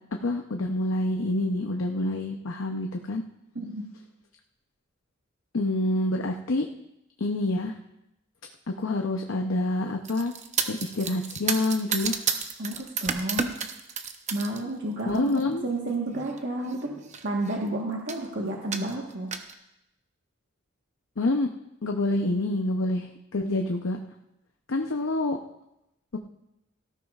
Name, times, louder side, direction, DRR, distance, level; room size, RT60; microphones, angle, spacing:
voice 1, 0.2-3.2 5.5-6.7 7.2-7.7 8.8-10.3 10.7-12.2 15.1-15.6 21.2-21.5 21.8-24.0 24.7-25.4 26.1-26.2, left 2 dB, 80° left, 3 dB, 0.7 m, -27 dB
voice 2, 3.5-3.9 12.6-13.6 14.3-19.3, right 2 dB, 60° right, -2 dB, 1.4 m, -31 dB
sound 1, 10.0-14.6 15.0-15.4 16.3-16.4 16.7-16.8 17.0-17.6 18.1-18.3 18.7-19.5, right 6 dB, 35° right, 0.8 m, -31 dB
17.5 x 13.5 x 2.4 m, 0.88 s
head